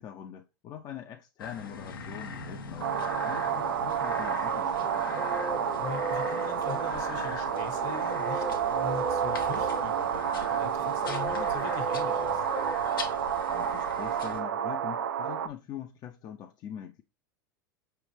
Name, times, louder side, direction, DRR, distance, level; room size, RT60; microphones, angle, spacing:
voice 1, 0.0-2.9 3.2-5.3 13.5-17.0, left 9 dB, 35° left, 0.5 m, -43 dB
sound 1, 1.4-14.4, left 5 dB, 85° left, 0.8 m, -42 dB
sound 2, 2.8-15.5, right 8 dB, 80° right, 0.4 m, -30 dB
sound 3, 4.8-13.5, right 1 dB, 15° right, 0.5 m, -38 dB
voice 2, 5.8-12.4, left 6 dB, 60° left, 1.2 m, -41 dB
5.6 x 2.5 x 3.3 m
hypercardioid pair, 90°, 11 cm